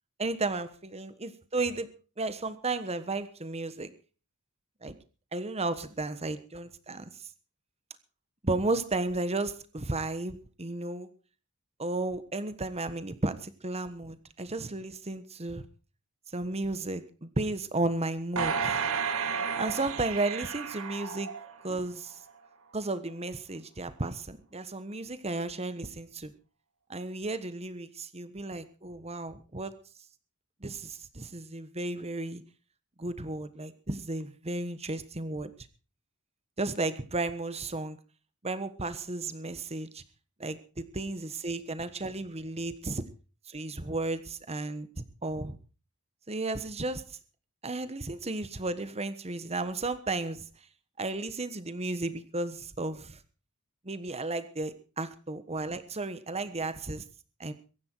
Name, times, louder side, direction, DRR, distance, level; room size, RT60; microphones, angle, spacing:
voice 1, 0.2-1.9 2.2-3.9 4.8-5.0 5.3-7.1 8.4-11.1 11.8-15.6 16.3-18.9 19.6-21.3 21.6-22.1 22.7-26.3 26.9-29.7 30.6-32.4 33.0-35.5 36.6-38.0 38.4-40.0 40.4-43.0 43.5-45.6 46.3-47.0 47.6-50.4 51.0-53.2 53.8-57.0 57.4-57.5, right 2 dB, 30° right, 12 dB, 1.3 m, -33 dB
sound 1, 18.4-21.8 22.3-22.4, right 6 dB, 65° right, 2.0 m, -32 dB
23.0 x 10.5 x 4.6 m, 0.36 s
head